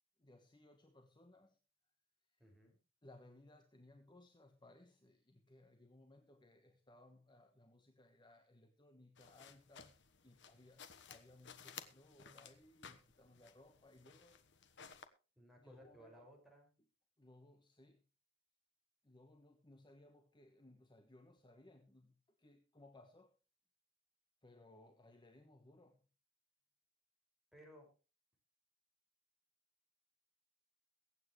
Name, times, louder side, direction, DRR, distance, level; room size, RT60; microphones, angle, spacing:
voice 1, 0.2-1.6 2.2-2.5 3.0-14.4 15.6-16.3 17.2-18.0 19.0-23.3 24.4-26.1, left 2 dB, 25° left, 1.3 m, -63 dB
voice 2, 2.4-2.8 15.4-16.7 27.5-27.9, equal, ahead, 5.9 m, -60 dB
sound 1, 9.2-15.1, left 7 dB, 65° left, 1.3 m, -57 dB
22.5 x 9.0 x 3.2 m
head